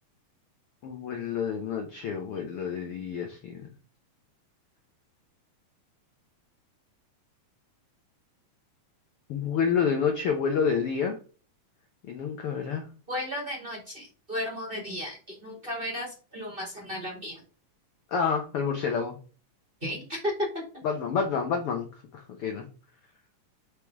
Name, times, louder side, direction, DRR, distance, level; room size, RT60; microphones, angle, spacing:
voice 1, 0.8-3.6 9.3-11.2 12.1-12.9 18.1-19.2 20.8-21.9 22.1-22.6, left 6 dB, 80° left, 4 dB, 1.2 m, -28 dB
voice 2, 13.1-17.4 19.8-20.3, left 1 dB, 20° right, -2 dB, 1.8 m, -34 dB
5.2 x 5.0 x 4.6 m, 0.37 s
omnidirectional pair, 3.8 m